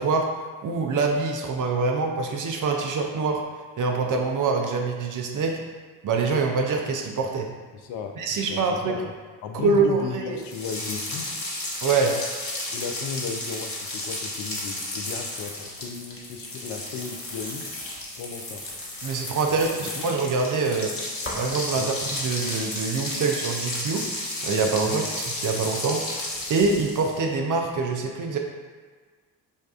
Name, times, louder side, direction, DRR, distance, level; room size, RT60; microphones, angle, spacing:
voice 1, 0.0-3.4 3.8-5.6 6.0-7.5 8.2-9.0 9.5-10.4 11.8-12.2 19.0-20.9 21.3-21.9 22.2-24.0 24.4-26.2 26.5-28.4, right 4 dB, 40° right, 2 dB, 0.6 m, -25 dB
voice 2, 7.7-9.1 9.4-11.4 12.7-17.7 18.2-18.6 19.5-20.0 21.7-22.0 24.8-25.0, left 6 dB, 55° left, 4 dB, 0.5 m, -35 dB
sound 1, 10.4-27.2, left 1 dB, 25° left, 1.1 m, -33 dB
5.2 x 2.3 x 2.4 m, 1.5 s
hypercardioid pair, 45°, 49 cm